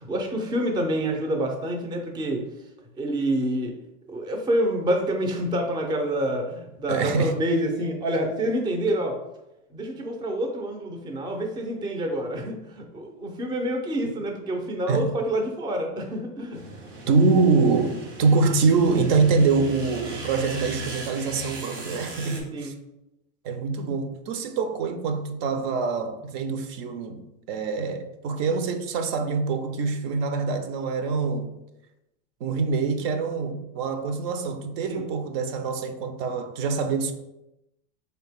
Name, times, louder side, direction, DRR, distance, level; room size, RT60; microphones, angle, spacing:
voice 1, 0.0-2.4 3.0-3.8 4.1-9.2 9.7-16.6 22.2-22.7 34.9-35.0, right 1 dB, 10° right, 0.4 m, -27 dB
voice 2, 6.9-7.3 14.9-15.1 17.1-22.7 23.4-31.5 32.4-37.1, right 4 dB, 60° right, 0.6 m, -24 dB
sound 1, 16.5-22.4, right 2 dB, 85° right, 1.4 m, -38 dB
3.9 x 2.8 x 3.4 m
supercardioid pair, 125°, 36 cm